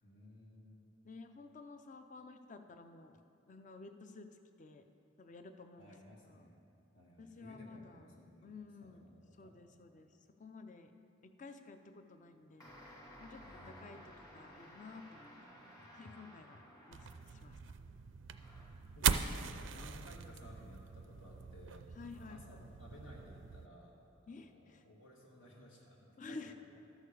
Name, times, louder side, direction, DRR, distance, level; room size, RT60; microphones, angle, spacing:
voice 1, 0.0-0.9 5.8-6.6 6.9-8.5 8.8-9.6 13.4-14.0 18.9-19.4 19.7-23.9 24.2-26.4, left 1 dB, 70° left, -3 dB, 1.6 m, -57 dB
voice 2, 1.0-3.2 3.5-4.3 4.6-4.9 5.2-5.9 6.2-6.5 7.2-9.1 9.4-10.1 10.4-10.9 11.4-12.8 13.2-14.0 14.3-15.3 15.9-16.6 16.9-17.7 22.0-22.6 24.3-24.8 26.2-26.5, left 3 dB, 40° left, 8 dB, 0.5 m, -52 dB
sound 1, 12.6-17.6 18.3-18.9, equal, 20° left, 1.5 m, -56 dB
sound 2, 16.9-23.7, right 7 dB, 70° right, 0.4 m, -40 dB
13.0 x 6.5 x 4.9 m, 2.6 s
head